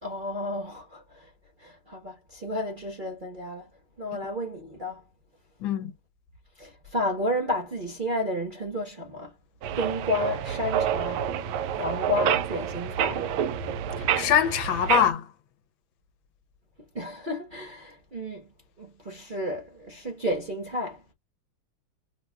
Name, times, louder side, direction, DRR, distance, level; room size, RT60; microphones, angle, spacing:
voice 1, 0.0-1.3 1.6-3.7 4.0-5.0 6.6-9.3 9.8-11.3 11.7-13.3 16.9-18.4 18.8-21.0, left 1 dB, 35° right, 0.9 m, -32 dB
sound 1, 9.6-15.1, right 9 dB, 80° right, 1.4 m, -28 dB
voice 2, 14.1-15.3, left 9 dB, 75° left, 1.4 m, -23 dB
5.7 x 2.3 x 2.2 m
omnidirectional pair, 2.3 m